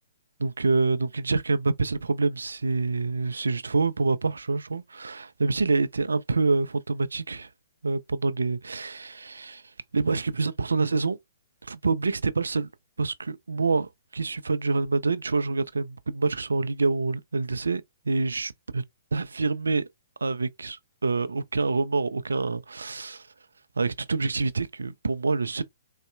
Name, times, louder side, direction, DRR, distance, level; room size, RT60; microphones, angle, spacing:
voice 1, 0.4-7.5 7.8-9.6 9.9-11.2 11.6-12.7 13.0-18.8 19.1-19.9 20.2-23.2 23.8-25.6, right 3 dB, 70° right, 0.3 m, -26 dB
3.8 x 2.1 x 2.2 m
figure-of-eight pair, 120°, 0 cm